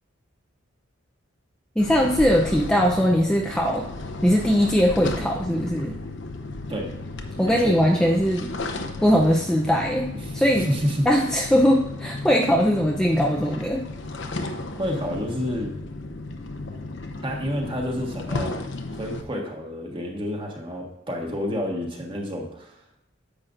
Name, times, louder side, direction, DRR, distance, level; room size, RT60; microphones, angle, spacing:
sound 1, 1.8-19.2, left 2 dB, 60° left, 0.9 m, -34 dB
voice 1, 1.8-3.9 4.2-6.0 7.4-8.5 9.0-10.7 11.1-13.8, equal, 5° left, -1 dB, 0.5 m, -20 dB
voice 2, 7.4-7.8 10.2-11.1 14.8-15.7 17.2-18.5 18.9-22.8, equal, 25° right, 0 dB, 1.5 m, -29 dB
10.0 x 7.5 x 2.6 m, 0.89 s
head